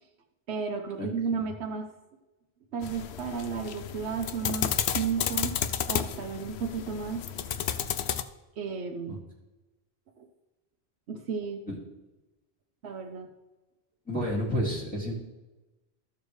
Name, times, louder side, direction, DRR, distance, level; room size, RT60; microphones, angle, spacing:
voice 1, 0.5-1.9 2.7-5.6 5.9-7.3 8.6-9.2 10.2-10.3 11.1-11.6 12.8-13.3, right 5 dB, 90° right, 3 dB, 1.1 m, -33 dB
sound 1, 2.8-8.2, left 9 dB, 85° left, 0.8 m, -32 dB
voice 2, 14.1-15.2, equal, 10° left, -6 dB, 2.1 m, -30 dB
13.5 x 6.9 x 3.1 m, 1.1 s
omnidirectional pair, 1.1 m